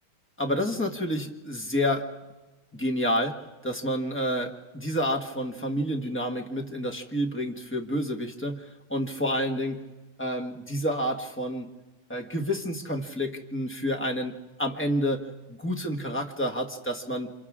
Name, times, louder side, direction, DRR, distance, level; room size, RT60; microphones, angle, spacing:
voice 1, 0.4-2.1 2.7-9.9 10.2-11.7 12.1-17.3, equal, 5° left, 2 dB, 1.3 m, -29 dB
29.5 x 27.0 x 3.7 m, 1.1 s
omnidirectional pair, 2.2 m